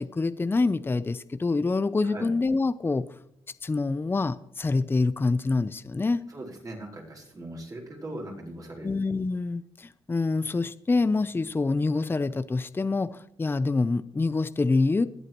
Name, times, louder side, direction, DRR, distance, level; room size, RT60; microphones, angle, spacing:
voice 1, 0.0-3.1 3.6-6.2 8.8-15.1, left 3 dB, 20° left, 13 dB, 0.6 m, -26 dB
voice 2, 6.3-8.9, right 1 dB, 40° right, -1 dB, 4.6 m, -39 dB
22.0 x 8.1 x 3.0 m, 0.80 s
cardioid pair, 70°, 10 cm